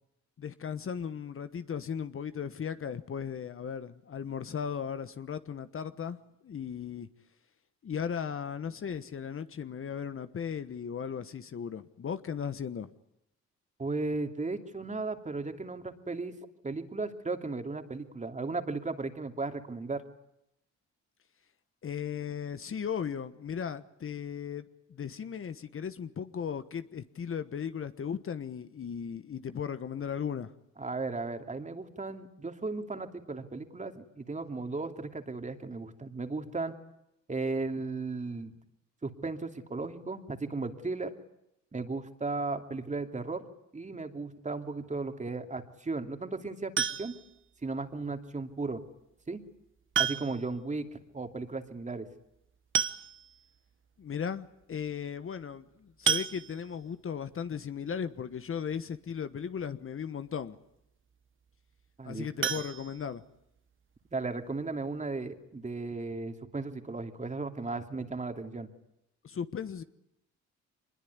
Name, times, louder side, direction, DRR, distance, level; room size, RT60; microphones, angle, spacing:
voice 1, 0.4-6.2 6.4-7.1 7.8-12.9 21.8-24.6 24.9-30.5 54.0-60.6 62.0-63.2 69.2-69.8, left 7 dB, 45° left, 12 dB, 1.3 m, -36 dB
voice 2, 13.8-16.3 16.6-20.0 30.8-36.7 37.3-38.5 39.0-41.1 41.7-43.4 43.7-47.1 47.6-48.8 49.3-49.4 50.0-50.9 51.1-52.1 62.0-62.6 64.1-68.7, right 3 dB, 25° right, 6 dB, 2.8 m, -35 dB
sound 1, 46.8-47.4 48.9-49.0 49.9-50.6 50.9-51.0 51.2-51.3 52.3-52.4 52.7-53.5 54.0-54.1 54.4-54.6 56.1-56.9 62.4-63.6 64.0-64.1 64.5-64.6 64.9-65.0, right 7 dB, 40° right, 1.2 m, -31 dB
24.0 x 21.0 x 9.6 m, 0.83 s
cardioid pair, 90°, 30 cm